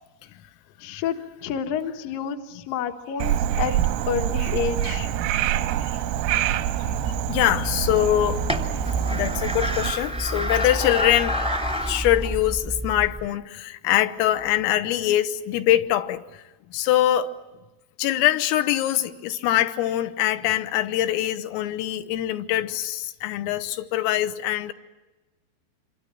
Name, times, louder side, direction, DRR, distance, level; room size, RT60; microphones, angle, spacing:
voice 1, 0.8-1.2 1.4-3.7 4.1-5.1, left 8 dB, 65° left, 2.4 m, -29 dB
Frog, 3.2-9.9, right 11 dB, 85° right, 3.7 m, -26 dB
sound 1, 7.0-13.2, equal, 5° right, 0.7 m, -28 dB
voice 2, 7.3-8.5 9.1-11.4 11.8-16.4 16.7-17.3 18.0-24.7, left 13 dB, 85° left, 3.7 m, -23 dB
27.0 x 25.0 x 7.7 m
omnidirectional pair, 5.9 m